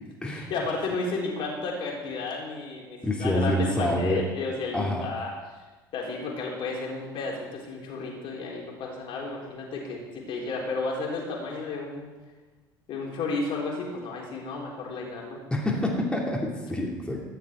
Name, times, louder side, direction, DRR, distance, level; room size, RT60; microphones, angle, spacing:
voice 1, 0.2-5.3 5.9-12.1 12.9-15.4, left 3 dB, 50° left, -1 dB, 3.7 m, -33 dB
voice 2, 3.0-4.2 4.7-5.1 15.5-17.2, left 1 dB, 10° left, -2 dB, 2.8 m, -27 dB
14.0 x 11.0 x 4.5 m, 1.2 s
figure-of-eight pair, 65°, 12 cm